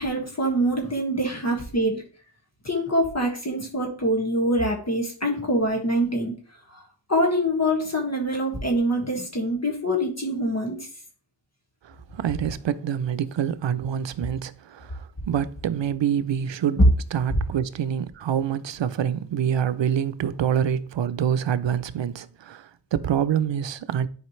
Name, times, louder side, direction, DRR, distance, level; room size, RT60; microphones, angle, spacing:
voice 1, 0.0-2.0 2.6-6.3 6.7-6.8 7.1-10.8, equal, 35° left, 1.8 m, -25 dB
voice 2, 11.8-16.8 17.1-24.1, right 8 dB, 85° right, 0.6 m, -26 dB
11.0 x 5.0 x 3.1 m
wide cardioid pair, 85°, 43 cm